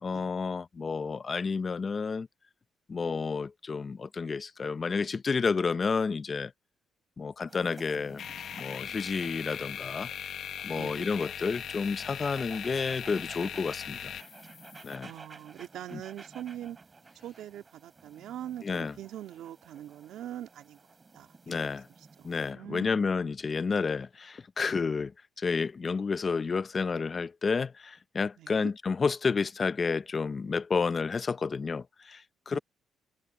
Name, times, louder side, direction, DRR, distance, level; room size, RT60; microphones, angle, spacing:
voice 1, 0.0-2.3 2.9-6.5 7.2-8.2 8.6-10.1 10.6-14.1 14.8-15.1 15.9-16.0 18.6-18.9 21.5-21.9 22.2-25.1 25.4-32.6, left 5 dB, 35° left, 0.7 m, -30 dB
sound 1, 7.5-22.5, right 4 dB, 30° right, 3.6 m, -53 dB
sound 2, 8.2-15.0, left 9 dB, 65° left, 1.0 m, -40 dB
voice 2, 10.7-11.2 15.0-16.8 17.2-20.8 21.1-23.3 28.4-28.7 32.5-32.6, right 12 dB, 80° right, 2.9 m, -43 dB
cardioid pair, 90°, 0 cm